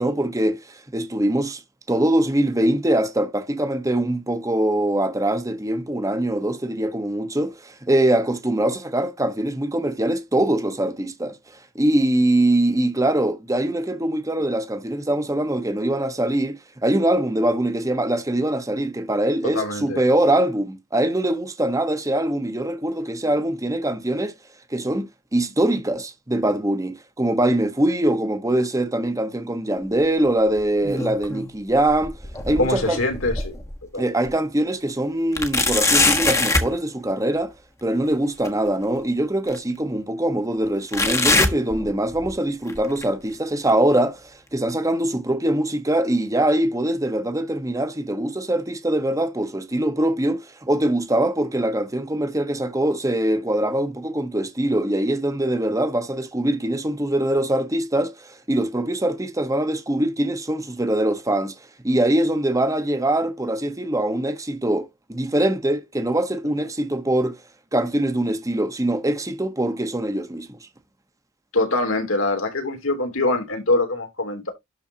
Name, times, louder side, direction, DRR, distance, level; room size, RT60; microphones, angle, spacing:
voice 1, 0.0-1.6 1.9-11.4 11.7-24.3 24.7-32.1 32.4-33.0 34.0-37.5 37.8-61.5 61.8-67.4 67.7-70.6, right 1 dB, 15° right, 1.2 m, -23 dB
voice 2, 19.4-20.0 32.6-33.5 33.9-34.0 71.5-74.5, left 2 dB, 75° left, 3.3 m, -23 dB
sound 1, 30.6-31.5 31.9-33.8 34.3-34.4 35.3-36.7 38.4-38.5 39.5-39.6 40.9-42.3 42.7-43.0 43.7-43.8 44.7-44.8, left 2 dB, 15° left, 1.4 m, -22 dB
12.0 x 4.4 x 2.8 m
head